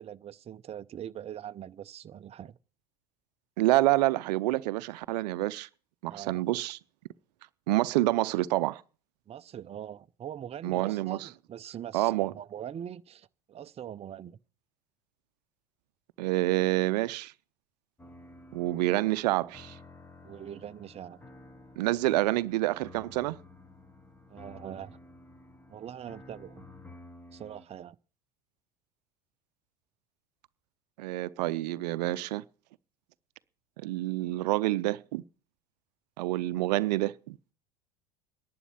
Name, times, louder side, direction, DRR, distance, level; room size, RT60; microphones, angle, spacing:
voice 1, 0.0-2.6 6.1-6.4 9.3-14.4 20.2-21.2 24.3-25.0 25.7-26.6 27.3-28.0, right 10 dB, 30° right, 0.6 m, -42 dB
voice 2, 3.6-5.7 6.0-6.8 7.7-8.8 10.6-11.3 11.9-12.3 16.2-17.3 18.5-19.8 21.8-23.4 31.0-32.4 33.8-35.2 36.2-37.4, right 17 dB, 75° right, 0.6 m, -27 dB
sound 1, 18.0-27.6, left 2 dB, 10° left, 1.5 m, -52 dB
11.0 x 9.5 x 8.6 m
hypercardioid pair, 80°, 21 cm